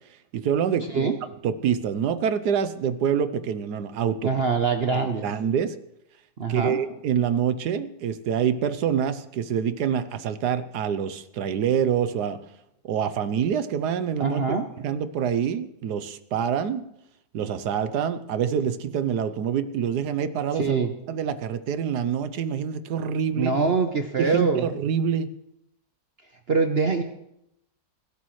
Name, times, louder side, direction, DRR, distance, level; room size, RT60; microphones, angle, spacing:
voice 1, 0.3-1.1 1.4-4.3 4.9-5.7 6.5-12.4 12.8-14.4 14.8-16.8 17.3-20.8 21.1-23.5 24.2-25.3, right 8 dB, 70° right, 13 dB, 1.3 m, -26 dB
voice 2, 4.2-5.2 6.4-6.8 14.2-14.7 20.5-20.9 23.4-24.6 26.5-27.0, right 4 dB, 45° right, 5 dB, 0.8 m, -24 dB
23.0 x 12.5 x 3.2 m, 0.81 s
omnidirectional pair, 1.9 m